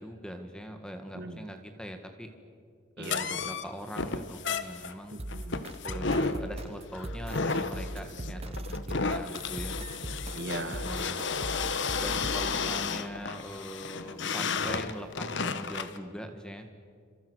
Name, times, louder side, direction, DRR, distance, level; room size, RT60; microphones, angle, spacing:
voice 1, 0.0-2.3 3.0-5.2 5.8-9.8 10.7-11.2 12.0-16.7, equal, 5° left, 5 dB, 1.8 m, -42 dB
voice 2, 1.2-1.5 3.0-3.4 5.1-5.7 8.0-8.4 10.3-10.9, right 2 dB, 50° right, 8 dB, 1.9 m, -40 dB
sound 1, 3.0-16.0, left 4 dB, 55° left, 1.1 m, -33 dB
sound 2, 5.2-12.6, right 1 dB, 30° right, 0.9 m, -40 dB
30.0 x 27.0 x 6.4 m, 2.2 s
head